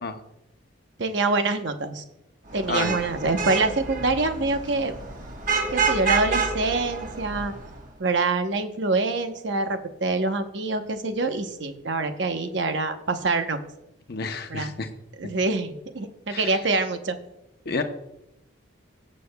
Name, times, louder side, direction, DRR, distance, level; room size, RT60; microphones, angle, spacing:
voice 1, 1.0-2.0 2.5-4.9 5.7-7.5 8.0-13.6 14.5-14.7 15.2-17.2, right 3 dB, 60° right, 7 dB, 0.9 m, -25 dB
Vehicle horn car horn honking / Traffic noise roadway noise, 2.5-7.8, right 5 dB, 40° right, 1.3 m, -28 dB
voice 2, 2.7-3.0 14.1-14.9 16.3-16.5 17.6-17.8, left 4 dB, 50° left, 6 dB, 0.8 m, -30 dB
18.0 x 7.6 x 2.3 m, 0.87 s
head